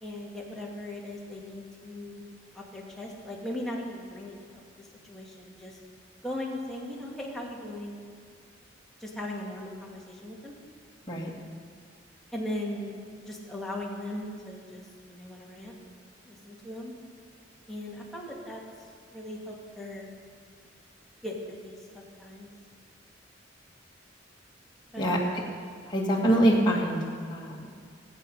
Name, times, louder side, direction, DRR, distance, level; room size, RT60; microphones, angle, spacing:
voice 1, 0.0-2.2 2.5-4.4 5.0-5.8 6.2-8.0 9.0-10.5 12.3-13.0 13.3-15.7 16.3-16.9 17.7-18.6 19.1-20.1 21.2-22.5 24.9-25.3, left 1 dB, ahead, -4 dB, 2.1 m, -38 dB
voice 2, 25.0-25.4 25.9-27.0 27.3-27.7, right 1 dB, 25° left, -4 dB, 1.9 m, -24 dB
20.0 x 8.2 x 5.4 m, 2.1 s
head